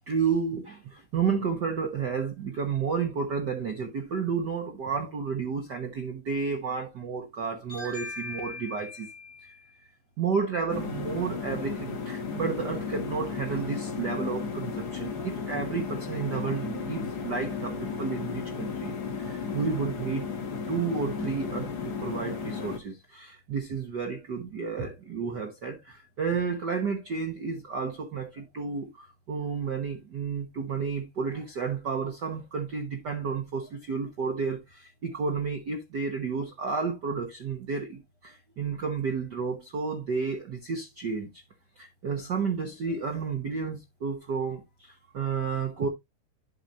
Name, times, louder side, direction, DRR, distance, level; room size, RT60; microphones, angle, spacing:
voice 1, 0.1-9.9 10.2-20.2 20.7-41.4 41.8-45.9, right 5 dB, 65° right, 1.0 m, -31 dB
sound 1, 10.7-22.8, left 5 dB, 60° left, 1.0 m, -34 dB
12.0 x 4.9 x 2.6 m
omnidirectional pair, 3.6 m